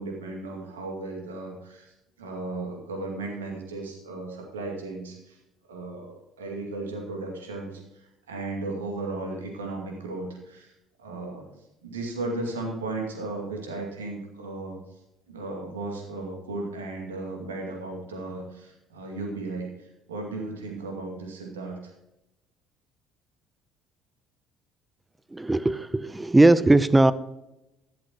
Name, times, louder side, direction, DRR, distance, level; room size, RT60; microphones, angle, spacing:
voice 1, 0.0-5.4 5.7-7.8 8.3-10.7 11.0-11.5 11.8-14.8 15.3-21.8, right 2 dB, 80° right, 1 dB, 2.2 m, -35 dB
voice 2, 25.3-27.1, right 2 dB, 15° right, 17 dB, 0.6 m, -19 dB
13.0 x 11.5 x 3.0 m, 0.93 s
figure-of-eight pair, 55°, 0 cm